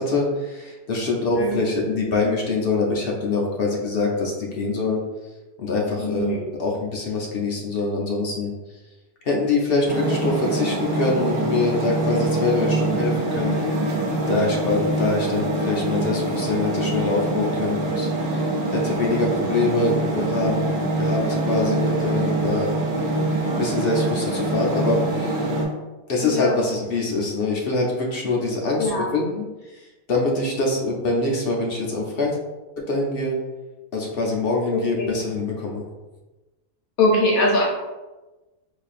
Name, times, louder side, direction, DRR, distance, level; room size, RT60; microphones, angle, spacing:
voice 1, 0.0-5.0 5.6-8.5 9.2-13.5 14.3-22.7 23.6-25.5 26.1-32.4 32.8-33.4 33.9-35.8, left 3 dB, 60° left, -2 dB, 0.6 m, -24 dB
voice 2, 6.0-6.4 19.0-19.2 26.2-26.5 28.8-29.1 34.7-35.1 37.0-37.6, left 2 dB, 75° left, -3 dB, 1.2 m, -22 dB
sound 1, 9.9-25.6, right 2 dB, 60° right, 1.0 m, -24 dB
4.1 x 2.7 x 2.4 m, 1.1 s
omnidirectional pair, 1.5 m